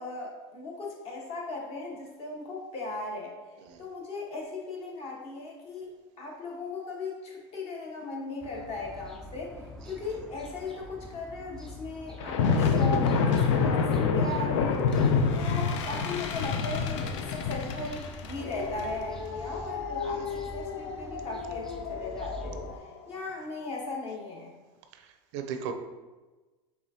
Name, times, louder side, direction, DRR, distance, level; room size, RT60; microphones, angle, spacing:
voice 1, 0.0-3.3 3.8-5.9 6.2-15.1 15.3-24.6, left 3 dB, 40° left, -2 dB, 1.3 m, -37 dB
sound 1, 8.4-22.8, left 1 dB, 5° left, 0.4 m, -45 dB
voice 2, 9.8-10.2 15.4-15.7 20.1-20.3 24.9-25.7, right 7 dB, 70° right, 7 dB, 0.5 m, -40 dB
sound 2, 12.2-22.8, left 5 dB, 80° left, 0.5 m, -28 dB
4.8 x 3.4 x 2.8 m, 1.2 s
supercardioid pair, 125°, 15 cm